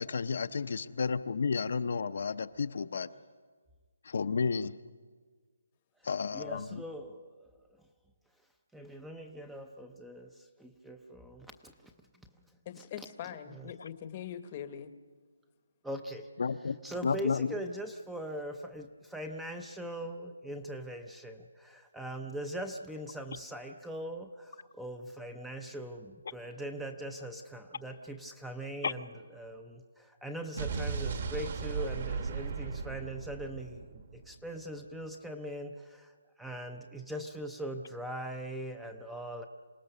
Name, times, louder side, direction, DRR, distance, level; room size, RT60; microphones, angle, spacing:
voice 1, 0.0-3.1 4.0-4.7 6.0-6.8 16.4-16.8 17.0-17.5 28.8-28.9, left 5 dB, 50° left, 10 dB, 0.6 m, -32 dB
voice 2, 6.0-7.8 8.7-11.9 12.5-12.6 13.0-13.1 13.5-13.7 15.8-16.3 16.6-39.5, right 1 dB, ahead, 6 dB, 0.5 m, -41 dB
voice 3, 12.6-14.9, left 9 dB, 25° left, 11 dB, 0.9 m, -42 dB
Explosion, 30.6-34.6, right 5 dB, 40° right, 1.3 m, -36 dB
26.5 x 18.0 x 6.7 m, 1.5 s
hypercardioid pair, 175°, 0 cm